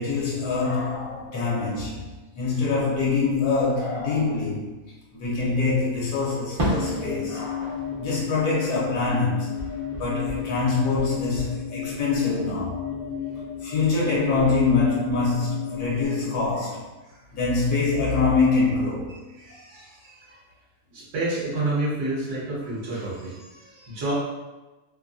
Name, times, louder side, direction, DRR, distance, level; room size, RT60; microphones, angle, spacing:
voice 1, 0.0-2.1 2.3-4.8 5.1-9.5 10.0-12.8 13.6-16.8 17.3-19.2, left 4 dB, 75° left, -5 dB, 1.3 m, -24 dB
sound 1, 6.6-16.0, left 8 dB, 60° left, 1.0 m, -33 dB
Fireworks, 6.6-9.2 9.5-11.5, equal, 35° right, 0.5 m, -33 dB
voice 2, 19.4-20.4 20.9-24.1, right 2 dB, 55° right, -6 dB, 1.1 m, -30 dB
2.9 x 2.5 x 2.3 m, 1.1 s
omnidirectional pair, 1.7 m